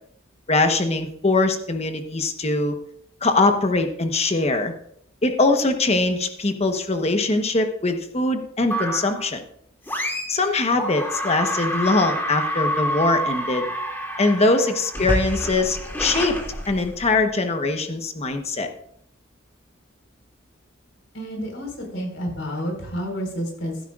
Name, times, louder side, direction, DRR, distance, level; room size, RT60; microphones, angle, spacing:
voice 1, 0.5-2.8 3.2-4.7 5.2-9.4 10.3-13.6 14.2-16.4 16.7-18.7, left 2 dB, 35° left, 6 dB, 1.1 m, -22 dB
sound 1, 8.7-9.3 9.9-10.5 10.8-17.2, equal, 10° left, 2.5 m, -28 dB
voice 2, 21.1-23.9, equal, 75° left, 1 dB, 4.8 m, -30 dB
15.5 x 12.5 x 2.5 m, 0.67 s
head